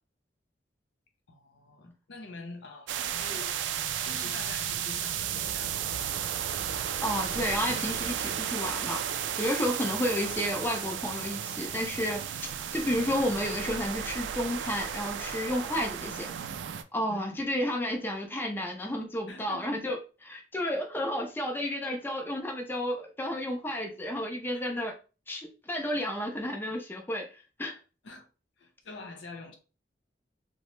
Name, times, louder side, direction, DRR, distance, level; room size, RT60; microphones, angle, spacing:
voice 1, 1.3-3.6 3.9-6.4 17.1-17.4 19.3-19.7 23.7-24.0 24.5-24.7 28.0-28.3 28.6-29.5, left 3 dB, 75° left, 0.6 m, -46 dB
sound 1, 2.9-16.8, right 9 dB, 90° right, 0.3 m, -34 dB
voice 2, 7.0-9.0 9.4-16.3 16.9-24.9 25.3-27.8, left 1 dB, 10° left, 0.5 m, -32 dB
2.8 x 2.0 x 3.1 m
head